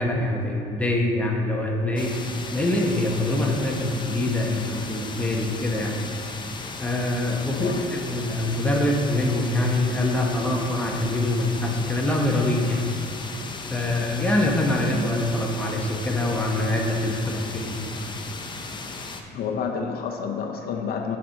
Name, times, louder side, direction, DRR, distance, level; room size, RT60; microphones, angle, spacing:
voice 1, 0.0-2.1 2.5-6.0 6.8-12.9 13.7-17.8, left 1 dB, 10° left, -1 dB, 1.1 m, -24 dB
sound 1, 2.0-19.2, left 3 dB, 25° left, 0.7 m, -36 dB
voice 2, 7.5-7.8 19.3-21.2, left 6 dB, 65° left, 4 dB, 0.7 m, -29 dB
7.5 x 4.4 x 6.4 m, 2.9 s
cardioid pair, 110°, 17 cm